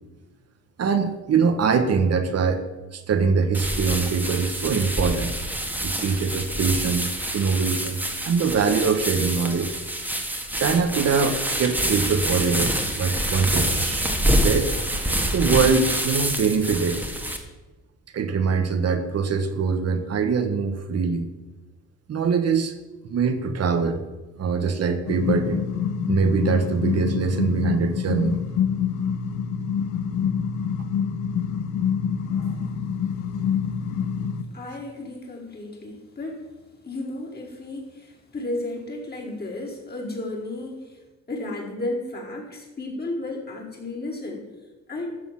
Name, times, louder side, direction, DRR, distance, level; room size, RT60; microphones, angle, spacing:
voice 1, 0.8-2.6 2.9-5.3 5.8-8.0 8.2-9.7 10.3-14.1 14.4-14.7 15.3-17.1 18.1-21.3 22.1-22.7 23.1-24.0 24.4-25.6 26.1-28.4 32.4-32.6, right 5 dB, 55° right, 7 dB, 1.3 m, -23 dB
sound 1, 3.5-17.4, right 1 dB, 5° right, 1.9 m, -26 dB
sound 2, 25.1-34.4, left 7 dB, 80° left, 1.0 m, -26 dB
voice 2, 34.5-36.4 36.8-41.0 41.3-44.5 44.9-45.2, left 2 dB, 30° left, -3 dB, 4.4 m, -33 dB
13.0 x 7.0 x 7.6 m, 1.2 s
cardioid pair, 90°, 30 cm